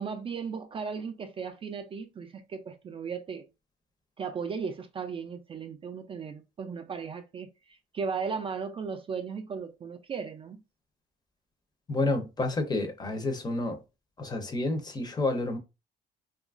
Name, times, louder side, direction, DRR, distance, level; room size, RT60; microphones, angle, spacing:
voice 1, 0.0-3.5 4.2-10.6, right 5 dB, 30° right, 0.4 m, -36 dB
voice 2, 11.9-13.8 14.2-15.6, left 2 dB, 25° left, 0.6 m, -29 dB
2.8 x 2.4 x 2.3 m
cardioid pair, 110°, 17 cm